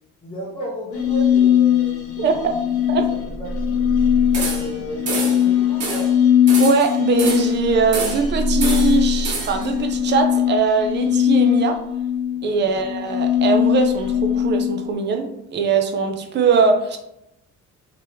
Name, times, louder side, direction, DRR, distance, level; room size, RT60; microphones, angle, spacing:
voice 1, 0.2-2.4 2.7-6.2 12.3-12.6, right 1 dB, 15° left, -8 dB, 0.7 m, -34 dB
sound 1, 0.9-14.9, left 9 dB, 50° left, 1.0 m, -20 dB
voice 2, 2.2-2.5 2.9-3.1 6.6-11.8 12.4-17.0, right 5 dB, 35° right, 5 dB, 0.4 m, -21 dB
sound 2, 4.3-4.8 5.1-5.5 5.8-6.1 6.5-7.6 7.9-8.3 8.6-9.7, right 3 dB, 55° right, 1.0 m, -27 dB
3.4 x 2.9 x 3.4 m, 0.82 s
cardioid pair, 165°, 30 cm